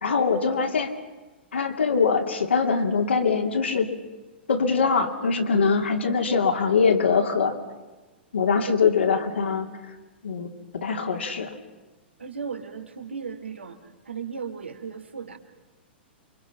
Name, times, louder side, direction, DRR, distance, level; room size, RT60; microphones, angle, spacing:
voice 1, 0.0-0.9 1.5-3.9 4.5-7.6 8.3-9.7 10.2-11.5, left 5 dB, 85° left, 4 dB, 2.8 m, -23 dB
voice 2, 12.2-13.8 14.0-15.4, right 6 dB, 90° right, 6 dB, 2.7 m, -35 dB
28.5 x 24.0 x 5.8 m, 1.2 s
hypercardioid pair, 115°, 6 cm